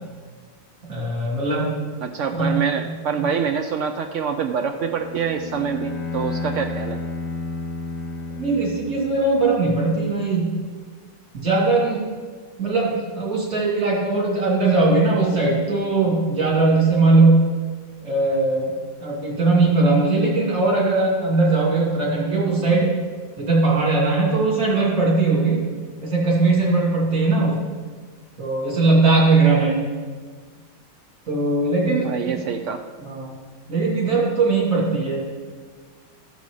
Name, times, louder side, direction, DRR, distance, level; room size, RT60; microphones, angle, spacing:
voice 1, 0.9-1.7 2.3-2.5 2.8-3.3 8.4-10.6 11.3-12.0 12.6-17.5 18.0-18.7 19.0-22.9 23.4-25.6 26.0-27.6 28.4-29.8 31.3-32.4 33.0-33.3 33.7-35.2, right 3 dB, 55° right, -5 dB, 3.6 m, -19 dB
voice 2, 2.0-7.0 32.0-32.8, right 6 dB, 75° right, 6 dB, 0.7 m, -25 dB
Bowed string instrument, 4.7-9.5, left 3 dB, 75° left, 1.7 m, -32 dB
15.0 x 5.4 x 4.8 m, 1.5 s
omnidirectional pair, 1.8 m